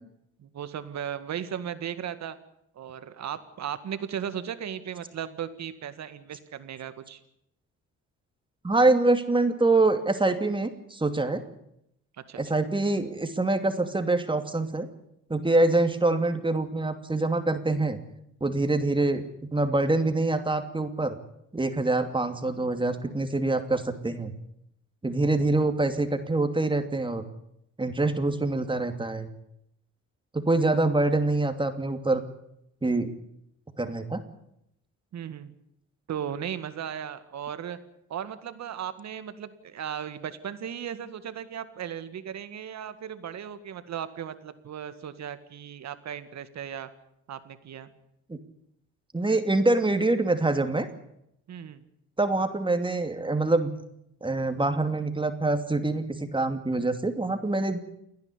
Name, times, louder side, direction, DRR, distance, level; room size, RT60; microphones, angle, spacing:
voice 1, 0.4-2.4 2.8-7.2 12.3-12.4 35.1-35.5 36.1-37.8 38.1-46.9 47.3-47.9 51.5-51.8, right 9 dB, 60° right, 12 dB, 2.0 m, -36 dB
voice 2, 8.6-11.4 12.4-14.9 15.3-18.0 18.4-19.2 19.5-21.2 21.5-24.3 25.0-27.2 27.8-29.3 30.3-32.2 32.8-33.1 33.8-34.2 48.3-48.4 49.1-50.9 52.2-53.7 54.2-57.8, right 2 dB, 15° right, 8 dB, 2.8 m, -25 dB
29.5 x 10.5 x 10.0 m, 0.78 s
cardioid pair, 90°, 30 cm